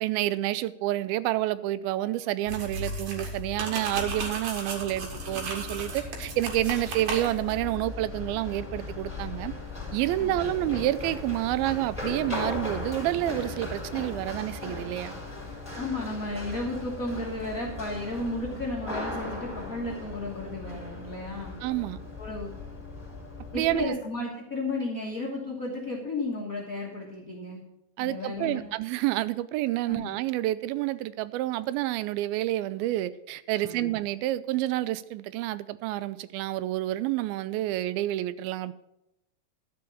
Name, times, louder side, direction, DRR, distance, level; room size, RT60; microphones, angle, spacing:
voice 1, 0.0-9.5 9.9-15.2 21.6-22.0 23.5-24.0 28.0-38.7, right 15 dB, 85° right, 2.4 m, -29 dB
sound 1, 2.5-7.6, right 2 dB, 65° right, 3.0 m, -35 dB
Run, 4.8-23.9, left 2 dB, ahead, 3.3 m, -38 dB
voice 2, 15.8-21.5 22.2-22.5 23.5-27.6 28.0-28.7 29.9-30.1 33.6-33.9, left 2 dB, 65° left, 0.8 m, -33 dB
12.0 x 5.2 x 6.9 m
omnidirectional pair, 4.2 m